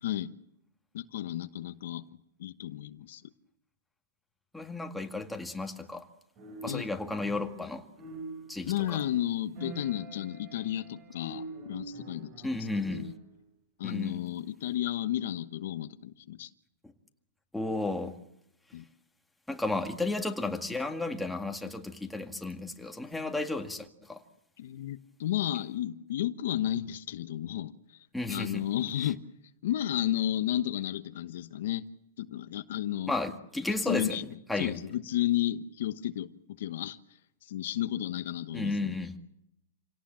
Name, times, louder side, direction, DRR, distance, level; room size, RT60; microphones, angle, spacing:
voice 1, 0.9-2.0 2.4-3.2 6.7-6.9 8.6-12.5 12.9-13.1 13.8-16.5 18.7-18.8 24.6-29.2 29.6-31.9 32.2-33.1 33.8-34.3 34.6-36.3 36.6-37.0 37.4-39.0, left 12 dB, 65° left, 1.1 m, -32 dB
voice 2, 4.5-6.0 6.6-7.8 8.5-8.7 12.4-13.1 13.8-14.2 17.5-18.1 19.5-24.2 28.1-28.6 33.1-34.8 38.5-39.1, left 2 dB, 5° left, 2.0 m, -33 dB
sound 1, 6.4-7.7 8.0-13.3, right 3 dB, 35° right, 7.5 m, -45 dB
27.5 x 18.0 x 7.6 m
hypercardioid pair, 145°, 0 cm